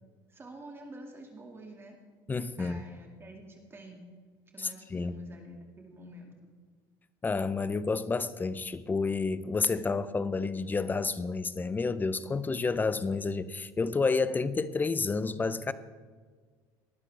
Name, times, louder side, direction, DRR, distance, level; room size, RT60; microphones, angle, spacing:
voice 1, 0.3-2.0 2.6-4.1 4.5-6.5, right 1 dB, 25° right, 2.1 m, -48 dB
voice 2, 2.3-2.8 4.6-5.2 7.2-15.7, left 4 dB, 20° left, 0.6 m, -30 dB
18.5 x 12.0 x 3.4 m
supercardioid pair, 110°, 10 cm